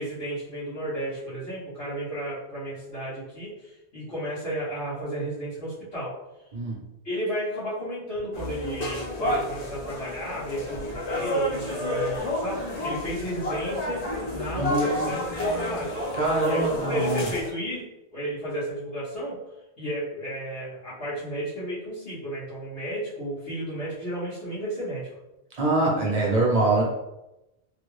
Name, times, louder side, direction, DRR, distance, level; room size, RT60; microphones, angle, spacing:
voice 1, 0.0-6.1 7.0-14.0 14.3-15.9 16.4-19.4 19.8-25.1 25.8-26.1, right 1 dB, 75° left, -14 dB, 1.6 m, -33 dB
sound 1, 8.3-17.5, left 1 dB, 40° left, 0.8 m, -30 dB
voice 2, 14.5-15.1 16.1-17.3 25.5-26.8, right 2 dB, 40° right, -3 dB, 0.9 m, -24 dB
3.2 x 2.3 x 3.2 m, 0.94 s
omnidirectional pair, 1.1 m